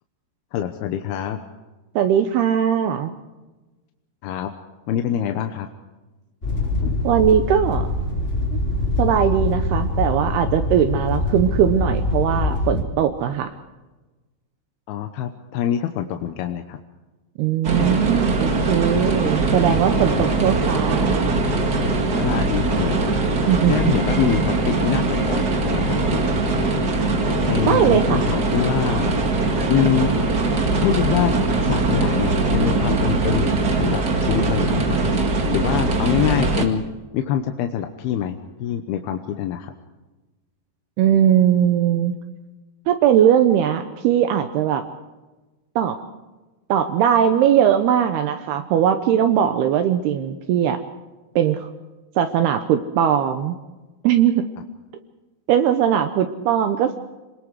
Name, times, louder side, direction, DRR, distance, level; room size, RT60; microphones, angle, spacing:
voice 1, 0.5-1.4 4.2-4.5 4.9-5.7 6.8-7.0 14.9-16.8 22.2-23.1 23.7-26.7 27.5-29.2 29.7-30.1 30.8-31.3 31.6-33.5 33.7-35.0 35.5-36.8 37.1-39.7, left 10 dB, 75° left, 6 dB, 2.7 m, -25 dB
voice 2, 2.0-3.1 7.0-7.9 8.5-8.6 9.0-13.5 17.4-21.3 23.5-24.0 27.6-28.2 41.0-42.1 42.9-44.9 45.8-46.0 46.7-50.8 51.4-51.7 52.2-53.6 54.0-54.5 55.5-57.0, right 9 dB, 75° right, 8 dB, 2.7 m, -19 dB
sound 1, 6.4-12.8, left 2 dB, 20° left, 1.8 m, -24 dB
sound 2, 17.6-36.7, right 3 dB, 55° right, 1.0 m, -21 dB
26.5 x 20.5 x 4.8 m, 1.1 s
omnidirectional pair, 5.0 m